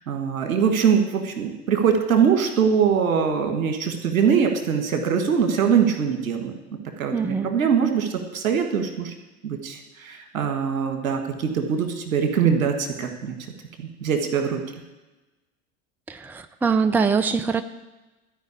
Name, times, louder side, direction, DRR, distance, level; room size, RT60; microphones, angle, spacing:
voice 1, 0.1-6.5 7.0-9.1 9.4-13.3 13.8-14.6, right 7 dB, 75° right, 5 dB, 1.7 m, -22 dB
voice 2, 7.1-7.5 16.1-17.6, right 5 dB, 5° right, 11 dB, 0.5 m, -23 dB
13.5 x 5.2 x 8.4 m, 1.1 s
figure-of-eight pair, 70°, 41 cm